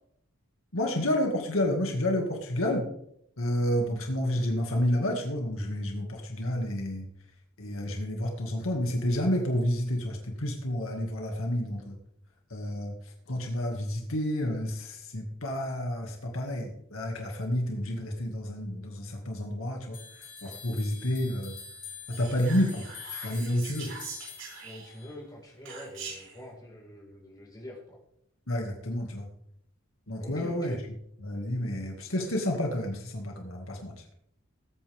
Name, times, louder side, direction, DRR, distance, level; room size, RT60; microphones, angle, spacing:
voice 1, 0.7-2.9 3.4-7.1 7.6-12.0 12.5-12.9 13.3-20.0 20.4-21.6 22.1-22.9 23.2-23.9 28.5-29.3 30.1-30.8 31.2-34.0, left 1 dB, 80° left, 2 dB, 2.2 m, -30 dB
sound 1, 19.9-25.2, left 7 dB, 45° left, 5.7 m, -46 dB
Whispering, 22.1-25.1 25.6-26.4, right 5 dB, 75° right, 6.7 m, -43 dB
voice 2, 24.5-28.0 30.2-30.8, left 1 dB, 20° left, -3 dB, 4.7 m, -45 dB
19.5 x 9.1 x 3.6 m, 0.72 s
head